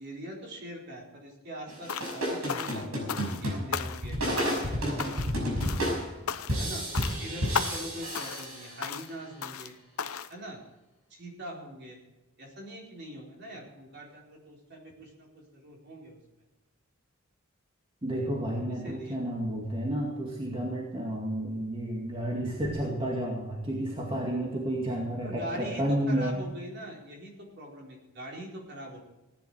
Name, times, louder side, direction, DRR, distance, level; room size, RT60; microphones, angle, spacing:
voice 1, 0.0-6.0 6.6-6.9 7.2-9.7 10.3-10.6 11.1-12.0 12.4-16.2 18.8-19.2 25.2-29.0, equal, 50° right, -1 dB, 4.2 m, -43 dB
sound 1, 1.7-9.1, equal, 80° right, 5.7 m, -32 dB
sound 2, 1.9-2.2 2.5-3.4 3.7-4.1 4.4-4.7 5.0-5.4 5.6-5.9 6.3-6.7 6.9-7.2 7.5-7.9 8.1-8.5 8.8-9.1 9.4-9.7 10.0-10.3, left 7 dB, 85° left, 0.8 m, -35 dB
voice 2, 18.0-26.3, right 1 dB, 25° right, -3 dB, 2.2 m, -31 dB
17.0 x 10.5 x 4.8 m, 1.1 s
head